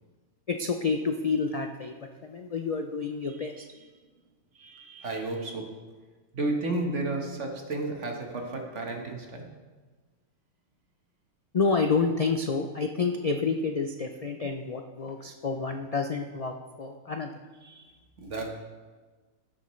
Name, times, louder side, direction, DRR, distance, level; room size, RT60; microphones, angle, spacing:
voice 1, 0.5-3.6 11.5-17.3, left 4 dB, 70° left, 4 dB, 0.3 m, -29 dB
voice 2, 4.5-5.9 6.3-9.6 17.6-18.5, right 2 dB, 60° right, 2 dB, 1.6 m, -33 dB
17.0 x 7.0 x 3.2 m, 1.4 s
omnidirectional pair, 1.4 m